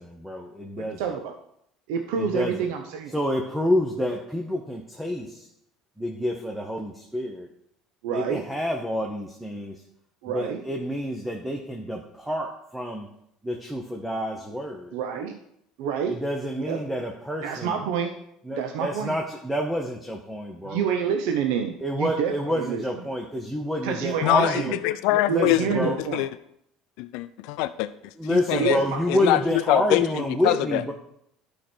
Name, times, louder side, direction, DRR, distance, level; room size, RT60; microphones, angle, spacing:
voice 1, 0.0-1.0 2.1-2.7 3.1-5.5 6.0-7.5 8.1-9.8 10.3-13.1 13.4-14.9 16.1-17.8 18.5-20.8 21.8-24.7 25.1-26.0 28.2-30.9, equal, 5° right, 1 dB, 0.9 m, -28 dB
voice 2, 0.8-1.4 1.9-3.2 8.0-8.4 10.2-10.6 14.9-15.4 15.8-16.2 16.5-16.8 17.4-18.1 18.5-19.2 20.6-22.8 23.8-24.8 25.3-26.2 28.5-29.2, right 7 dB, 80° right, 5 dB, 0.8 m, -28 dB
voice 3, 24.2-26.3 27.0-27.9 28.3-28.8 29.1-30.9, left 15 dB, 75° left, 11 dB, 0.4 m, -24 dB
11.5 x 5.0 x 4.5 m, 0.74 s
cardioid pair, 130°, 0 cm